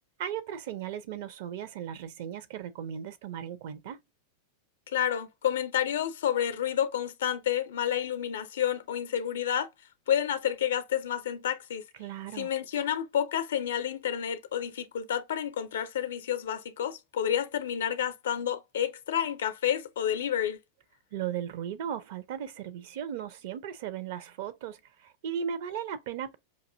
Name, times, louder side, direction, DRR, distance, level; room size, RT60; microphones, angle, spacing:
voice 1, 0.2-4.0 12.0-12.5 21.1-26.4, right 9 dB, 50° right, 0.5 m, -36 dB
voice 2, 4.9-9.7 10.1-11.8 12.4-20.6, left 9 dB, 60° left, 0.5 m, -30 dB
5.1 x 2.6 x 2.5 m
figure-of-eight pair, 90°, 0 cm